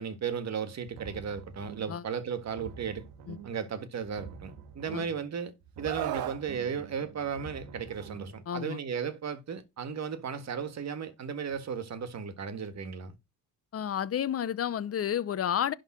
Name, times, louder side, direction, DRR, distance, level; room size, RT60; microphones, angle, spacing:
voice 1, 0.0-3.0 3.4-13.1, right 7 dB, 45° right, 1.6 m, -35 dB
sound 1, 0.8-2.1 2.4-3.7 4.0-5.3 5.6-8.4, right 6 dB, 85° right, 1.6 m, -47 dB
Screaming, 5.8-6.4 7.9-8.1, right 12 dB, 65° right, 1.1 m, -34 dB
voice 2, 8.5-8.8 13.7-15.7, left 9 dB, 40° left, 0.8 m, -31 dB
11.0 x 3.8 x 6.2 m
cardioid pair, 100°, 38 cm